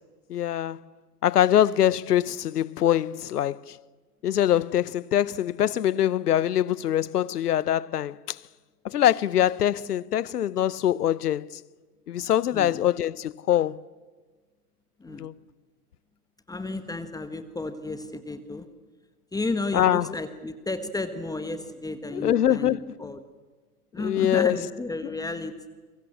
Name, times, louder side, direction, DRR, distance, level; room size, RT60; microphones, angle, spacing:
voice 1, 0.3-0.8 1.2-3.8 4.2-8.4 8.8-11.5 12.1-13.8 15.1-15.3 19.7-20.1 22.1-22.9 24.0-24.6 25.0-25.1, left 11 dB, 75° left, 0.9 m, -24 dB
voice 2, 16.5-18.7 19.3-23.2 23.9-25.7, left 3 dB, 10° left, 1.5 m, -32 dB
30.0 x 24.0 x 7.3 m
figure-of-eight pair, 100°, 47 cm